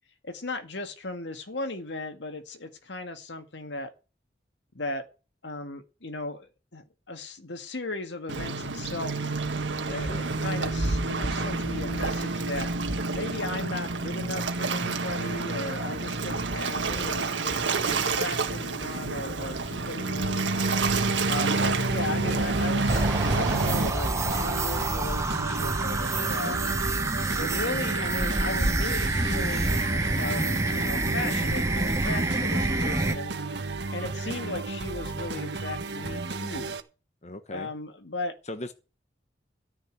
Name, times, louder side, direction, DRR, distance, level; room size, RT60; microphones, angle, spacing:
voice 1, 0.2-3.9 4.7-5.1 5.4-9.2 9.9-12.7 13.1-20.5 21.3-26.6 27.4-29.8 30.2-33.3 33.9-36.8 37.5-38.3, left 2 dB, 75° left, 1.9 m, -36 dB
Waves surf, 8.3-23.9, right 3 dB, 90° right, 1.7 m, -28 dB
sound 1, 20.8-36.8, right 3 dB, 70° right, 1.5 m, -34 dB
sound 2, 22.9-33.1, right 2 dB, 15° right, 0.9 m, -27 dB
voice 2, 26.1-26.6 37.2-37.7 38.5-38.7, left 1 dB, 35° left, 1.1 m, -39 dB
14.0 x 5.6 x 9.0 m
head